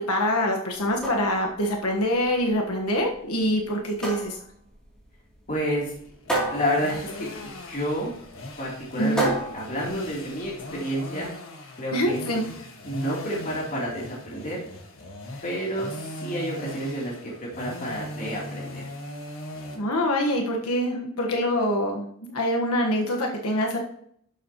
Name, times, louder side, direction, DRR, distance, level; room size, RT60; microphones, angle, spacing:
voice 1, 0.0-4.4 9.0-9.3 11.9-12.5 19.7-23.8, equal, 80° left, 1 dB, 1.4 m, -25 dB
sound 1, 0.7-10.7, right 2 dB, 5° left, 2.9 m, -33 dB
voice 2, 5.5-5.9 6.5-8.1 8.6-11.3 11.8-12.4 12.8-14.6 15.4-18.8, equal, 40° left, -4 dB, 3.1 m, -30 dB
sound 2, 5.7-19.8, left 1 dB, 65° left, 1.6 m, -40 dB
11.5 x 7.4 x 3.0 m, 0.67 s
head